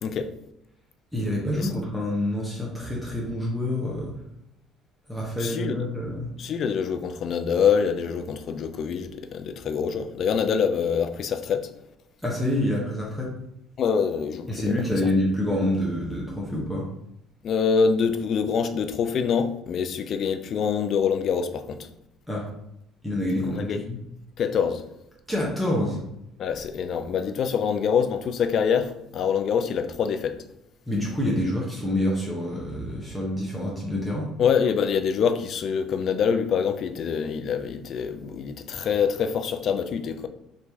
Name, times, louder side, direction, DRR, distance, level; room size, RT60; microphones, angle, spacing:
voice 1, 1.1-4.1 5.1-6.3 12.2-13.3 14.5-16.9 22.3-22.5 23.0-24.0 25.3-26.0 30.9-34.3, left 1 dB, ahead, 0.9 m, -27 dB
voice 2, 5.4-5.9 6.4-11.7 13.8-14.7 17.4-21.9 23.3-23.8 24.4-24.8 26.4-30.4 34.4-40.3, left 6 dB, 55° left, 0.4 m, -25 dB
3.0 x 2.6 x 3.5 m
supercardioid pair, 85°, 0 cm